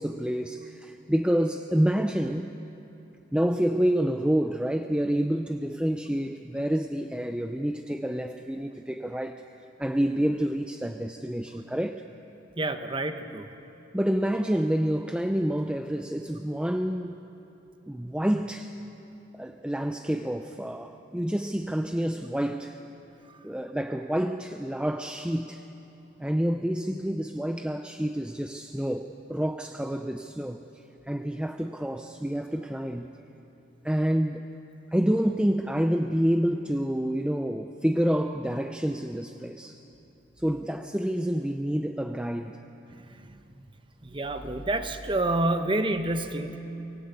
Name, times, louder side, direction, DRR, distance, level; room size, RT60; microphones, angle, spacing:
voice 1, 0.0-2.5 3.3-9.4 9.8-12.0 13.9-17.2 17.9-18.7 19.3-22.8 23.4-25.7 26.2-30.6 31.0-33.1 33.8-34.5 34.9-39.8 40.4-42.6, equal, 5° right, 6 dB, 0.5 m, -28 dB
voice 2, 12.6-13.5 44.0-46.6, right 2 dB, 25° right, 8 dB, 1.0 m, -28 dB
24.0 x 18.0 x 8.3 m, 3.0 s
head